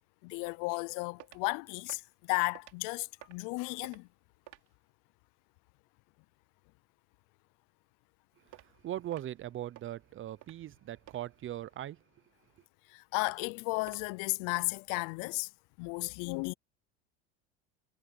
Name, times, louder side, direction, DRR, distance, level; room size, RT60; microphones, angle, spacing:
voice 1, 0.2-4.1 12.9-15.5 15.8-16.5, left 28 dB, 65° left, 0.6 m, -34 dB
sound 1, 1.2-1.5 1.9-2.1 2.5-2.8 3.2-3.5 3.8-4.1 4.5-4.7 8.5-8.7 9.1-9.4 9.7-9.9 10.4-10.7 11.1-11.2 13.2-13.5 13.9-14.1 14.5-14.6, right 17 dB, 60° right, 5.9 m, -52 dB
voice 2, 8.4-12.0, right 12 dB, 35° right, 0.7 m, -40 dB
supercardioid pair, 110°, 35 cm